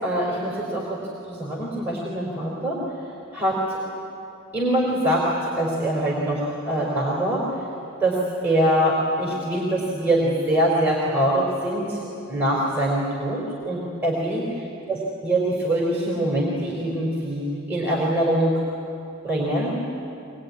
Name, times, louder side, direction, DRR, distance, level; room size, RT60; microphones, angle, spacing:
voice 1, 0.0-1.0 1.3-2.8 3.3-3.8 4.5-7.5 8.0-12.0 12.3-14.5 14.9-18.6 19.2-19.8, right 1 dB, 10° right, -4 dB, 4.0 m, -23 dB
23.5 x 22.0 x 9.6 m, 2.7 s
head